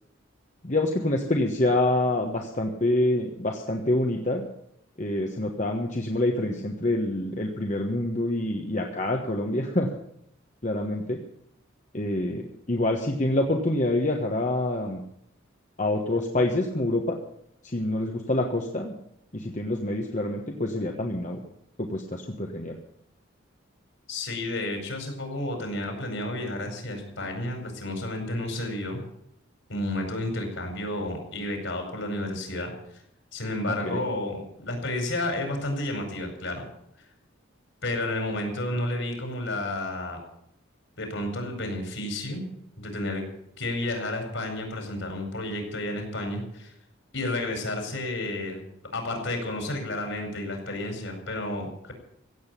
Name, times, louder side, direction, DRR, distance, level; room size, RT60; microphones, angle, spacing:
voice 1, 0.6-4.5 5.0-9.9 10.6-11.2 11.9-12.4 12.7-15.0 15.8-17.2 17.6-18.9 19.3-21.4 21.8-22.8 33.8-34.0, left 1 dB, 35° left, 2 dB, 1.3 m, -26 dB
voice 2, 24.1-29.0 29.7-33.0 33.3-36.6 37.0-37.1 37.8-40.2 41.0-42.5 42.8-43.2 43.6-46.7 47.1-48.6 48.9-51.9, left 1 dB, 65° left, 4 dB, 5.1 m, -31 dB
16.0 x 8.1 x 9.8 m, 0.73 s
head